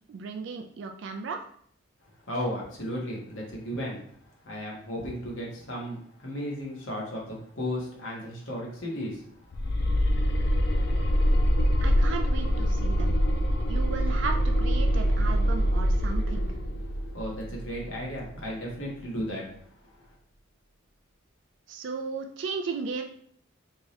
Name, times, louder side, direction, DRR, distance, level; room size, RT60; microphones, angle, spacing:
voice 1, 0.1-1.4 11.8-13.2 13.7-16.5 21.7-23.0, right 5 dB, 60° right, 4 dB, 0.3 m, -35 dB
voice 2, 2.2-4.2 4.4-9.3 16.9-20.1, equal, 70° left, -3 dB, 1.2 m, -35 dB
sound 1, 9.5-18.4, equal, 50° left, 0.4 m, -25 dB
3.5 x 2.8 x 3.1 m, 0.62 s
head